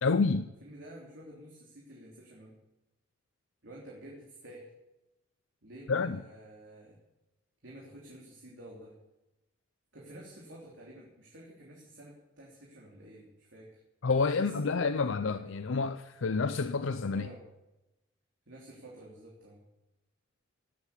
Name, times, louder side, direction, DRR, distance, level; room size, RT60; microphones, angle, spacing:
voice 1, 0.0-0.5 5.9-6.2 14.0-17.3, left 4 dB, 75° left, 0.5 m, -29 dB
voice 2, 0.6-2.5 3.6-4.7 5.6-7.0 7.6-9.0 9.9-13.8 14.3-15.6 17.0-17.4 18.5-19.6, right 1 dB, 65° right, 3.3 m, -50 dB
18.0 x 8.3 x 7.3 m
head